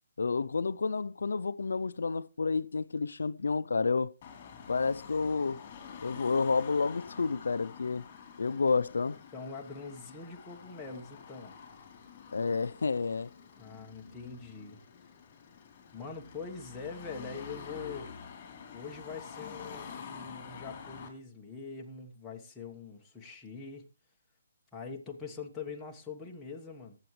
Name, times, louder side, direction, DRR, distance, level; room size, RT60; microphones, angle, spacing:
voice 1, 0.2-4.1 4.7-5.6 6.0-8.0 8.4-9.2 12.3-13.3, left 4 dB, 85° left, 0.5 m, -30 dB
Car passing by / Traffic noise roadway noise / Engine, 4.2-21.1, left 6 dB, 30° left, 3.2 m, -48 dB
voice 2, 9.3-11.6 13.6-14.8 15.9-18.1 18.7-23.8 24.7-27.0, left 5 dB, 5° left, 1.2 m, -43 dB
19.5 x 8.0 x 3.2 m
hypercardioid pair, 165°, 0 cm